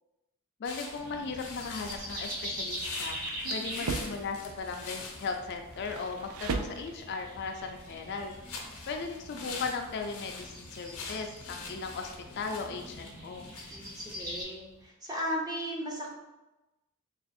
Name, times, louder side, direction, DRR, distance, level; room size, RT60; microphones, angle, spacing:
sound 1, 0.6-14.9, left 4 dB, 85° left, 0.7 m, -46 dB
voice 1, 0.6-3.2 3.5-8.3 8.9-13.5, left 4 dB, 50° left, 4 dB, 0.3 m, -37 dB
sound 2, 1.0-14.4, equal, 45° right, 1.3 m, -42 dB
sound 3, 2.9-4.3 5.1-7.2, right 4 dB, 80° right, 0.4 m, -37 dB
voice 2, 3.4-3.9 13.7-16.1, equal, 20° right, -3 dB, 0.6 m, -36 dB
3.4 x 2.4 x 4.1 m, 1.0 s
head